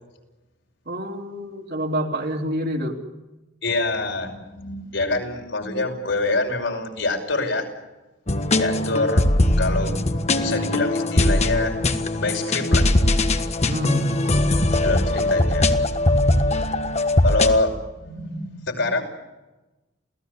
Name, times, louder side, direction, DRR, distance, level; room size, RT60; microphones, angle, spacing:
voice 1, 0.9-3.0 13.7-14.1, equal, 55° right, 2 dB, 3.5 m, -27 dB
voice 2, 3.6-7.6 8.6-9.2 9.6-11.7 12.2-13.1 14.8-15.7 17.2-19.0, left 2 dB, 75° left, 3 dB, 5.5 m, -25 dB
sound 1, 8.3-17.5, left 1 dB, 35° left, 1.5 m, -20 dB
28.5 x 17.5 x 8.4 m, 1.1 s
head